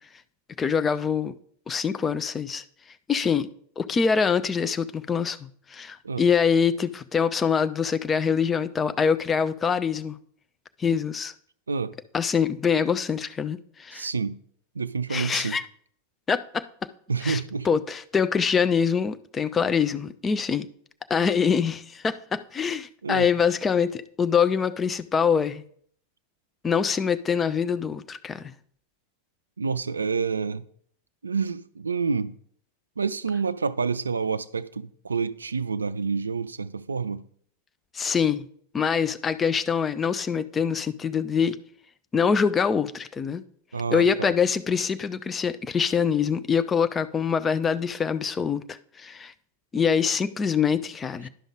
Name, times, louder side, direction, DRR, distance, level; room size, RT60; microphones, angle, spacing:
voice 1, 0.6-1.3 1.7-2.6 3.1-3.5 3.8-10.2 10.8-11.3 12.1-14.1 15.1-15.6 16.3-16.7 17.2-20.7 21.1-25.6 26.6-28.5 37.9-38.5 38.7-41.6 42.1-43.4 43.9-49.3 49.7-51.3, left 6 dB, 20° left, 0.4 m, -24 dB
voice 2, 13.9-14.4 14.8-15.6 17.1-17.7 23.0-23.3 29.6-30.6 31.2-32.3 33.0-37.2 43.7-44.3, right 5 dB, 75° right, 0.3 m, -28 dB
11.0 x 5.3 x 3.6 m
figure-of-eight pair, 90°, 0 cm